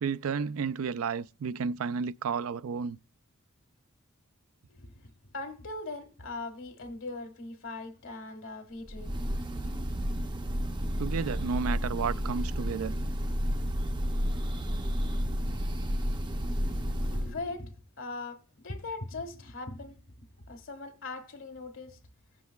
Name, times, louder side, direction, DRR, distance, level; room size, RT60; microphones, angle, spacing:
voice 1, 0.0-3.0 11.0-13.0, right 5 dB, 80° right, 0.4 m, -32 dB
voice 2, 4.7-9.2 16.4-20.0 20.5-22.0, left 3 dB, 65° left, 1.6 m, -40 dB
Breathing / Bird, 8.9-17.4, equal, 20° right, 0.5 m, -31 dB
16.5 x 7.5 x 2.3 m
head